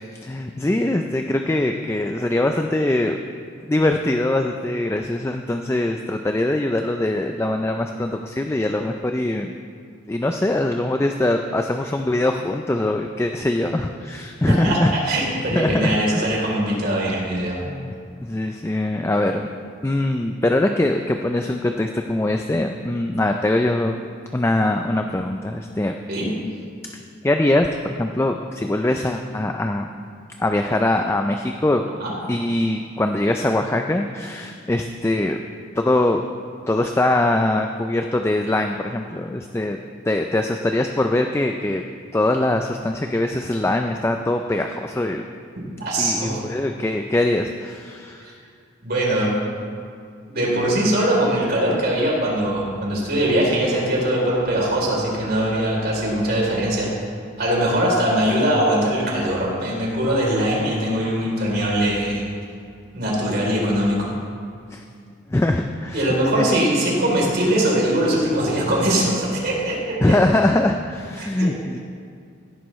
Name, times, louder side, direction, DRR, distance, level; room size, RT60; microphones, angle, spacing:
voice 1, 0.1-3.2 3.7-9.6 10.1-15.2 15.5-16.0 17.7-17.9 18.2-19.5 19.8-24.0 24.3-25.9 27.2-29.9 30.4-31.9 32.3-35.4 35.8-36.2 36.7-39.8 40.0-41.8 42.1-45.2 46.0-48.4 64.7-64.8 65.3-66.1 66.4-66.6 70.0-71.8, left 1 dB, 15° left, 5 dB, 0.3 m, -22 dB
voice 2, 14.5-17.6 26.1-26.3 32.0-32.1 45.8-46.4 48.8-49.3 50.2-56.9 57.4-62.2 62.9-64.1 65.9-70.0 71.2-71.5, right 1 dB, 50° right, -4 dB, 3.4 m, -21 dB
16.5 x 11.0 x 3.1 m, 2.3 s
head